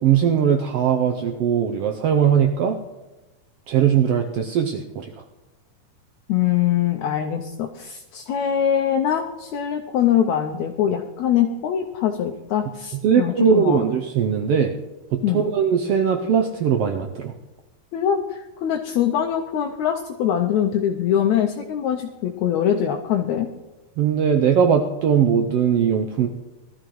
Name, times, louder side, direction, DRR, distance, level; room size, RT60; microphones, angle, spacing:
voice 1, 0.0-2.8 3.7-5.1 13.0-14.7 15.1-17.3 24.0-26.3, right 7 dB, 85° right, 4 dB, 1.3 m, -20 dB
voice 2, 6.3-13.8 15.2-15.4 17.9-23.5, left 9 dB, 75° left, 3 dB, 1.9 m, -23 dB
18.5 x 13.0 x 3.1 m, 1.1 s
omnidirectional pair, 3.6 m